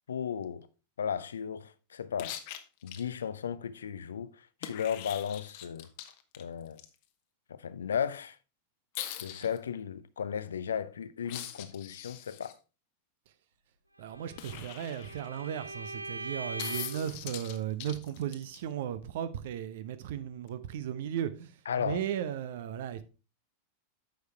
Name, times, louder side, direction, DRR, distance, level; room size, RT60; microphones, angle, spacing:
voice 1, 0.1-0.7 1.0-2.4 2.8-5.9 6.4-6.8 7.5-8.4 9.2-12.6 21.7-22.0, left 8 dB, 65° left, 0.6 m, -35 dB
sound 1, 2.2-3.0 4.6-6.8 8.9-9.6 11.2-12.5 14.4-15.5 16.6-18.6 20.5-20.6, left 12 dB, 50° left, 0.9 m, -42 dB
voice 2, 14.0-23.0, right 10 dB, 55° right, 0.8 m, -36 dB
Bowed string instrument, 14.1-17.1, right 2 dB, 85° right, 0.5 m, -41 dB
9.4 x 6.6 x 3.4 m
figure-of-eight pair, 90°, 0 cm